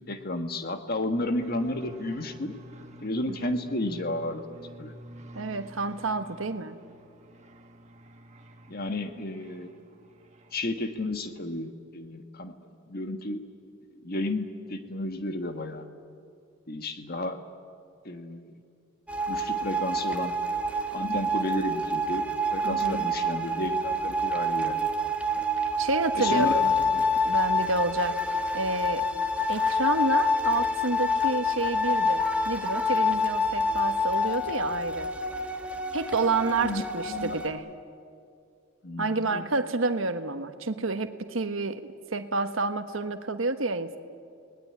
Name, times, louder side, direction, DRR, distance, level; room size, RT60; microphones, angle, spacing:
voice 1, 0.1-2.5 3.0-4.4 4.8-4.9 8.7-9.8 10.5-12.5 12.9-13.4 14.0-15.8 16.7-17.4 18.0-18.5 19.3-20.3 20.9-24.9 26.1-26.7 36.6-37.4 38.8-39.5, left 1 dB, 45° left, 7 dB, 1.5 m, -32 dB
sound 1, 1.4-10.9, right 1 dB, 35° right, 1.5 m, -48 dB
voice 2, 5.3-6.8 22.6-23.1 25.8-28.2 28.5-29.0 29.5-35.1 35.9-37.7 39.0-41.8 42.1-44.0, right 3 dB, 75° right, 8 dB, 1.3 m, -29 dB
sound 2, 19.1-37.5, left 2 dB, 5° right, 1.5 m, -27 dB
29.0 x 19.5 x 9.7 m, 2.4 s
head